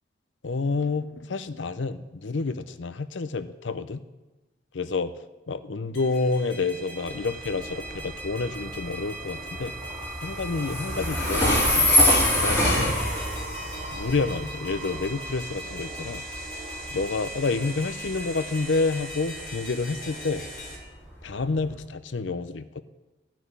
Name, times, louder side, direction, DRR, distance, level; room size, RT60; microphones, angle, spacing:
voice 1, 0.4-4.0 4.7-5.1 5.5-9.7 10.2-11.9 12.4-13.0 13.9-16.2 16.9-20.4 21.2-22.8, left 3 dB, 90° left, 12 dB, 0.6 m, -29 dB
sound 1, 5.9-20.8, right 1 dB, 50° left, 3.8 m, -39 dB
Train, 7.0-21.7, left 1 dB, 15° left, 3.6 m, -27 dB
15.0 x 6.1 x 9.5 m, 1.1 s
head